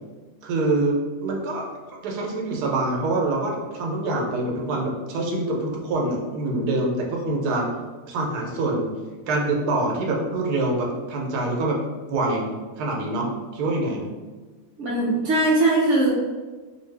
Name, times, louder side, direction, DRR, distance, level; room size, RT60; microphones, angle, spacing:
voice 1, 0.4-7.7 8.1-9.0 9.3-11.8 12.1-14.1, right 2 dB, 85° right, -1 dB, 1.2 m, -25 dB
voice 2, 14.8-16.1, right 2 dB, 65° right, -3 dB, 0.8 m, -20 dB
2.6 x 2.6 x 3.2 m, 1.3 s
omnidirectional pair, 1.6 m